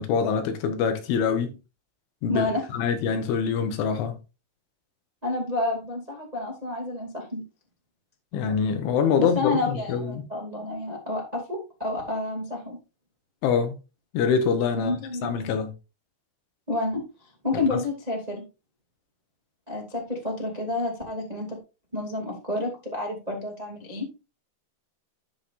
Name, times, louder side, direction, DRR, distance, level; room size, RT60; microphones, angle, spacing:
voice 1, 0.0-1.5 2.2-2.5 2.7-4.2 8.3-10.2 13.4-13.8 14.1-15.7 17.7-17.8, left 6 dB, 75° left, 3.4 m, -25 dB
voice 2, 2.3-2.7 5.2-7.4 8.3-8.4 9.2-12.8 14.8-15.5 16.7-17.0 17.4-18.4 19.7-21.6 21.9-24.1, left 2 dB, 25° right, 0.9 m, -29 dB
15.5 x 6.0 x 2.6 m
omnidirectional pair, 5.8 m